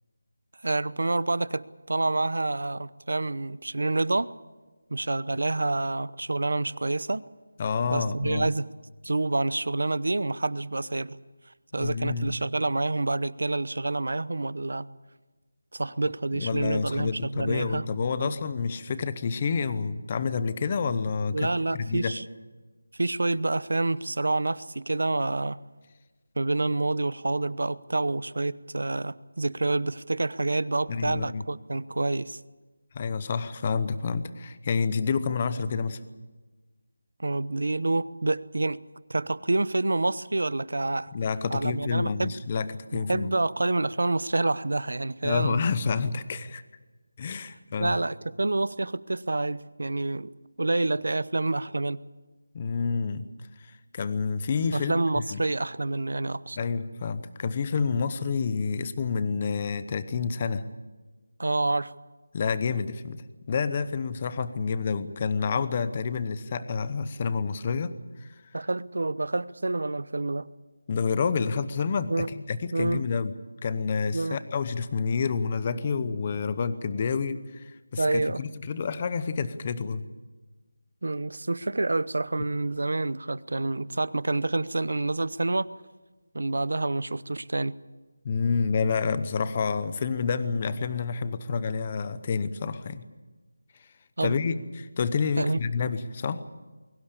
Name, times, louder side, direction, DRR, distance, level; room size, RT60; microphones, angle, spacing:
voice 1, 0.6-4.3 4.9-7.2 7.9-8.7 9.0-11.2 11.7-14.9 15.7-17.8 18.2-18.3 21.3-22.2 23.0-25.6 26.4-32.4 37.2-38.8 39.1-41.1 41.5-42.3 42.9-45.6 47.8-50.3 50.6-52.0 54.7-56.6 61.4-61.9 68.5-70.5 72.1-72.3 72.7-73.0 74.1-74.4 78.0-78.4 81.0-85.7 86.3-87.8 94.2-94.4 95.4-95.6, right 2 dB, 65° right, 19 dB, 0.8 m, -28 dB
voice 2, 7.6-8.5 11.7-12.4 16.4-22.2 30.9-31.4 32.9-36.0 41.1-43.3 45.2-46.6 47.2-48.0 52.5-53.3 53.6-55.4 56.6-60.6 62.3-67.9 68.2-68.3 70.9-73.3 73.6-80.0 88.2-93.0 94.2-96.4, left 5 dB, 20° left, 14 dB, 0.8 m, -29 dB
22.5 x 18.0 x 8.6 m, 1.2 s
figure-of-eight pair, 175°, 0 cm